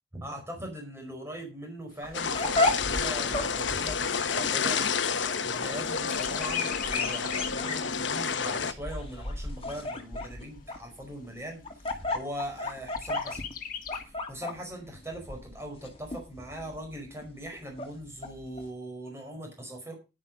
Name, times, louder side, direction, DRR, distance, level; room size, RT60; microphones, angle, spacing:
voice 1, 0.1-5.0 5.4-11.6 12.1-13.4 14.0-19.9, right 1 dB, 15° right, 2 dB, 5.0 m, -40 dB
Chirp tweet, 1.9-5.7 6.0-7.7 8.2-8.3 8.6-9.6 10.2-10.3 10.6-10.7 11.2-11.7 13.0-14.0, left 7 dB, 50° left, 1.7 m, -42 dB
sound 1, 2.0-18.7, left 2 dB, 30° left, 2.4 m, -34 dB
sound 2, 2.1-8.7, left 6 dB, 80° left, 1.1 m, -30 dB
11.0 x 10.0 x 5.3 m, 0.30 s
head